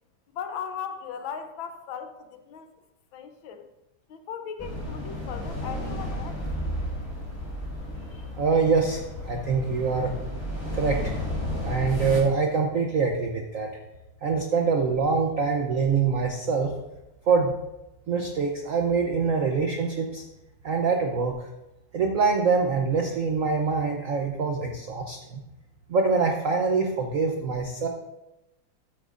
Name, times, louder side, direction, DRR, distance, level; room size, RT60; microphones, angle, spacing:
voice 1, 0.3-2.7 3.1-3.7 4.1-6.4, left 7 dB, 70° left, 7 dB, 1.4 m, -37 dB
sound 1, 4.6-12.2, equal, 10° left, 3.0 m, -32 dB
voice 2, 8.4-10.1 10.8-11.2 11.6-13.7 14.2-16.7 17.3-17.5 18.1-20.2 20.6-21.5 21.9-25.4 25.9-27.9, right 4 dB, 65° right, 2 dB, 0.7 m, -24 dB
13.5 x 9.0 x 2.5 m, 0.94 s
omnidirectional pair, 2.4 m